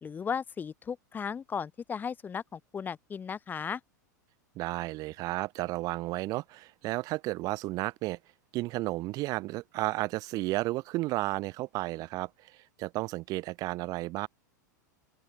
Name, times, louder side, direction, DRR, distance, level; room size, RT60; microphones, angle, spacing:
voice 1, 0.0-3.8, left 6 dB, 20° left, 1.3 m, -36 dB
voice 2, 4.5-8.2 8.5-14.3, right 19 dB, 40° right, 1.4 m, -33 dB
open air
figure-of-eight pair, 90°, 10 cm